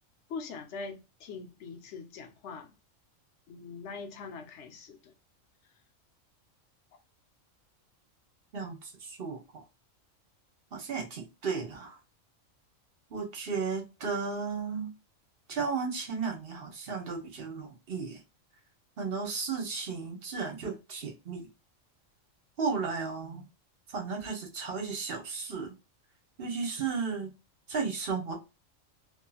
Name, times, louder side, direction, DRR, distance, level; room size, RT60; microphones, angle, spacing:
voice 1, 0.3-2.7 3.5-5.1, left 4 dB, 65° left, 0.9 m, -42 dB
voice 2, 8.5-9.6 10.7-12.0 13.1-14.9 15.5-18.2 19.0-21.4 22.6-23.4 23.9-25.7 26.4-27.3 27.7-28.3, right 5 dB, 50° right, 1.0 m, -34 dB
2.7 x 2.6 x 2.3 m
omnidirectional pair, 1.3 m